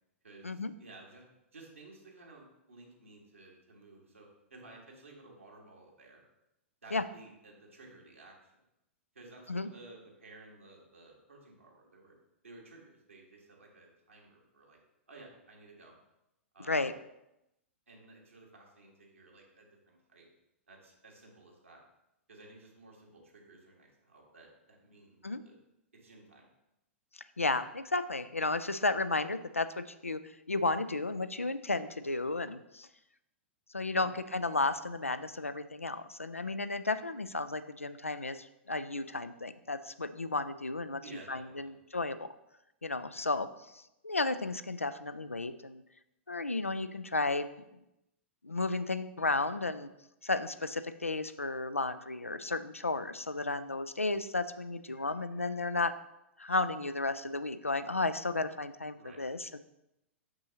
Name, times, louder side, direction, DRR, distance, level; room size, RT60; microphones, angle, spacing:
voice 1, 0.2-1.2 1.5-6.2 6.8-8.6 9.2-12.1 12.4-14.8 15.1-16.0 16.5-16.9 17.9-20.3 20.7-21.8 22.3-25.6 26.0-26.5 33.9-34.1 41.0-41.7 58.9-59.4, right 2 dB, 75° right, -2 dB, 1.7 m, -55 dB
voice 2, 27.4-30.2 30.5-32.9 33.7-41.0 41.3-42.3 42.8-43.5 43.7-45.8 46.3-47.5 48.4-49.9 50.2-55.9 56.4-59.6, left 3 dB, 85° left, 12 dB, 0.4 m, -33 dB
6.3 x 6.1 x 2.8 m, 0.87 s
figure-of-eight pair, 100°, 7 cm